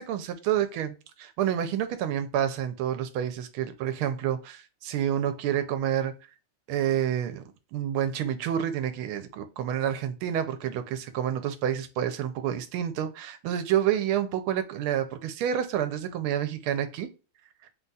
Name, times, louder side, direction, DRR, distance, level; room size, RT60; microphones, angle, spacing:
voice 1, 0.0-6.1 6.7-7.4 7.7-17.1, right 10 dB, 80° right, 1.5 m, -29 dB
4.0 x 2.4 x 3.9 m
omnidirectional pair, 2.4 m